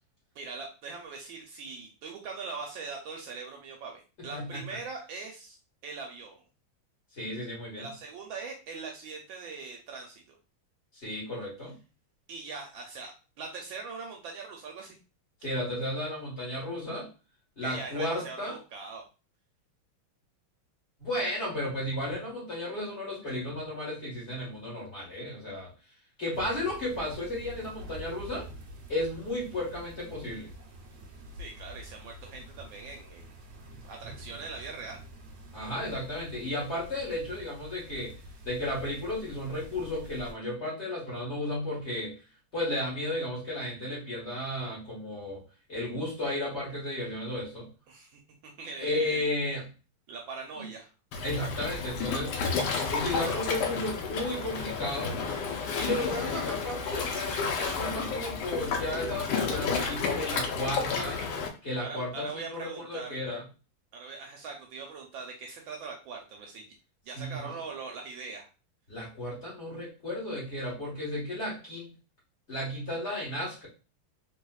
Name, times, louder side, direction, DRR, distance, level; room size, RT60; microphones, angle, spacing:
voice 1, 0.3-5.6 5.8-6.4 7.8-10.4 12.3-15.0 17.6-19.0 31.4-33.3 33.8-35.0 47.9-49.2 50.1-50.9 61.8-63.1 63.9-66.7 67.1-68.5, right 4 dB, 75° right, 2 dB, 1.2 m, -41 dB
voice 2, 4.2-4.8 7.1-7.9 10.9-11.8 15.4-17.1 17.6-18.6 21.0-25.7 26.2-28.5 28.9-30.5 35.5-38.2 38.4-42.2 42.5-45.4 45.7-47.7 48.8-49.7 50.5-50.7 51.2-52.5 52.9-55.2 55.7-61.2 61.6-63.4 67.1-67.6 68.9-71.9 72.5-73.7, left 1 dB, 35° left, -6 dB, 1.6 m, -34 dB
sound 1, 26.3-40.3, equal, 90° right, 0.6 m, -47 dB
Waves surf, 51.1-61.5, left 5 dB, 75° left, 0.9 m, -31 dB
3.4 x 3.0 x 2.3 m, 0.33 s
omnidirectional pair, 2.4 m